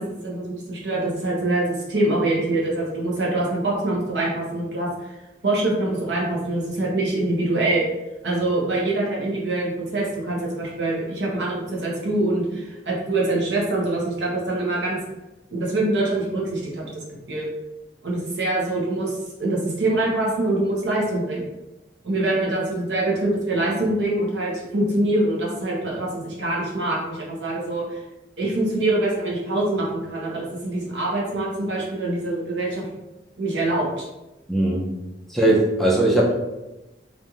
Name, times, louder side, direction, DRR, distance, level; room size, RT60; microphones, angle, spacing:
voice 1, 0.0-5.1 5.4-7.8 8.2-15.0 15.5-17.5 18.0-21.4 22.0-28.0 28.4-32.8 33.4-34.1, right 2 dB, 70° right, -4 dB, 0.8 m, -24 dB
voice 2, 34.5-34.8 35.3-36.3, right 1 dB, ahead, -5 dB, 0.4 m, -19 dB
2.9 x 2.5 x 2.3 m, 1.0 s
head